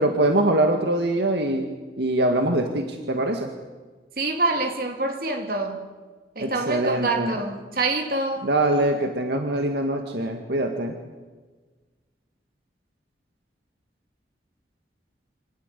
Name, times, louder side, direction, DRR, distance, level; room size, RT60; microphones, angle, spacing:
voice 1, 0.0-3.5 6.4-7.3 8.4-10.9, right 1 dB, 70° right, 2.0 m, -23 dB
voice 2, 4.2-5.9 6.3-8.5, right 3 dB, 55° right, 3.0 m, -26 dB
26.0 x 19.0 x 8.4 m
head